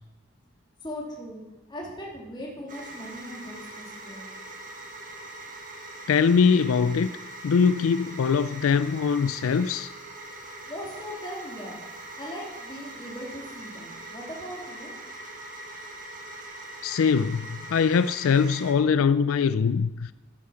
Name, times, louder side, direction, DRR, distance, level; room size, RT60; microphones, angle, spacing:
voice 1, 0.8-1.4 1.7-4.3 10.7-11.8 12.1-14.9, equal, 20° left, 2.8 m, -39 dB
sound 1, 2.7-18.7, right 2 dB, 40° right, 1.7 m, -42 dB
voice 2, 6.1-7.2 7.4-9.9 16.8-20.1, left 6 dB, 90° left, 0.4 m, -22 dB
10.5 x 9.7 x 5.7 m
head